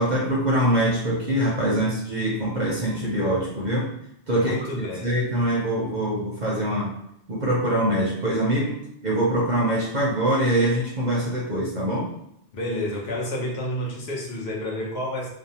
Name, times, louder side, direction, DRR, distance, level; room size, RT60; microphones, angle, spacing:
voice 1, 0.0-3.9 4.3-6.9 7.3-8.7 9.0-12.1, right 1 dB, 50° right, -5 dB, 0.6 m, -23 dB
voice 2, 4.3-5.1 12.5-15.3, left 1 dB, 70° left, -3 dB, 0.9 m, -29 dB
2.6 x 2.0 x 2.7 m, 0.77 s
omnidirectional pair, 1.2 m